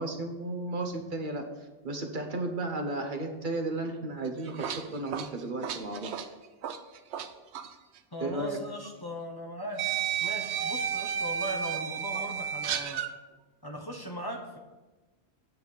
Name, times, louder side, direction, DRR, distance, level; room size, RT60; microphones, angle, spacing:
voice 1, 0.0-1.4 1.8-6.1 8.2-8.6, right 2 dB, 50° right, 4 dB, 1.0 m, -34 dB
sound 1, 4.3-7.3 7.5-7.7 8.8-8.9 9.8-13.1, right 8 dB, 75° right, 0.9 m, -32 dB
voice 2, 8.1-9.8 10.2-13.0 13.6-14.6, equal, 25° left, 2 dB, 0.8 m, -38 dB
8.8 x 4.1 x 7.1 m, 1.2 s
omnidirectional pair, 1.1 m